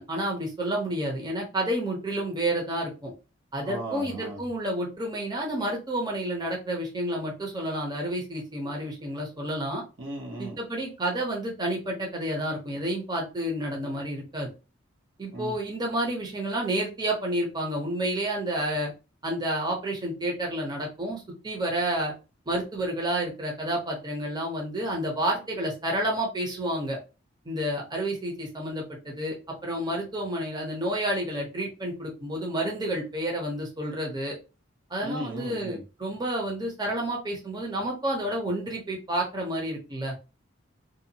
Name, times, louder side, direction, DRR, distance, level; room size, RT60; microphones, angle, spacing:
voice 1, 0.0-3.1 3.5-9.8 10.4-14.5 15.2-18.9 19.2-22.1 22.5-27.0 27.4-29.3 29.6-34.3 34.9-40.1, right 1 dB, 20° right, -1 dB, 0.7 m, -30 dB
voice 2, 3.6-4.4 10.0-10.6 15.3-15.5 35.0-35.8, equal, 85° right, 0 dB, 1.0 m, -36 dB
2.6 x 2.2 x 2.7 m, 0.31 s
head